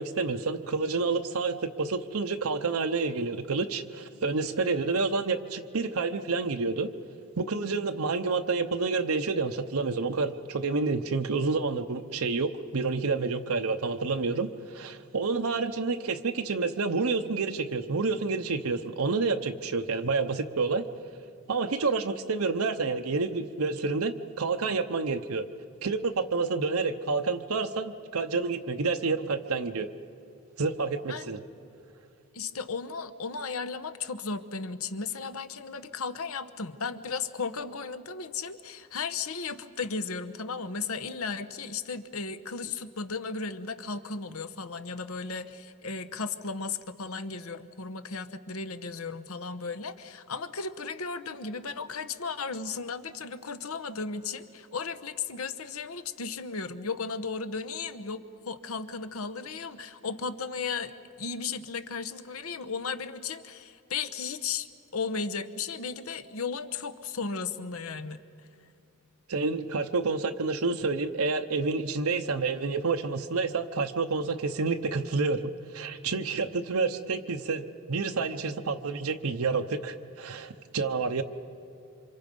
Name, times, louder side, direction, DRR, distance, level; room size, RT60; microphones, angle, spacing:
voice 1, 0.0-6.9 7.4-20.8 21.5-25.4 25.8-29.9 30.6-31.4 69.3-81.2, right 4 dB, 80° right, 6 dB, 0.8 m, -29 dB
voice 2, 32.3-60.9 61.2-64.7 64.9-68.2, left 5 dB, 80° left, 11 dB, 1.0 m, -35 dB
27.5 x 26.0 x 5.4 m, 2.6 s
head